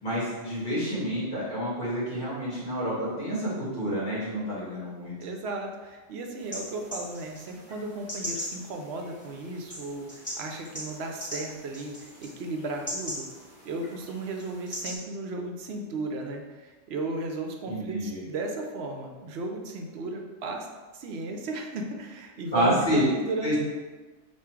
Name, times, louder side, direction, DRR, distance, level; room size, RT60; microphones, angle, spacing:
voice 1, 0.0-5.1 17.7-18.2 22.5-23.0 23.4-23.6, equal, 40° left, -8 dB, 1.6 m, -28 dB
voice 2, 5.2-13.3 13.6-20.7 20.9-23.6, right 2 dB, 65° right, 3 dB, 0.7 m, -35 dB
sound 1, 6.4-14.9, equal, 10° left, 1.3 m, -40 dB
3.6 x 2.4 x 4.4 m, 1.3 s
omnidirectional pair, 1.4 m